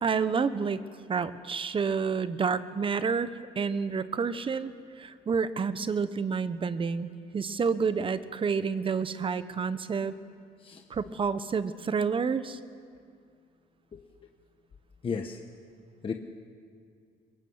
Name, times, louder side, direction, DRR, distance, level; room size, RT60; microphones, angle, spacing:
voice 1, 0.0-0.8 1.1-10.1 10.9-12.6, right 5 dB, 30° right, 13 dB, 1.1 m, -29 dB
voice 2, 15.0-15.4 16.0-16.1, left 5 dB, 30° left, 4 dB, 1.3 m, -33 dB
22.5 x 20.5 x 8.0 m, 2.3 s
cardioid pair, 110°, 17 cm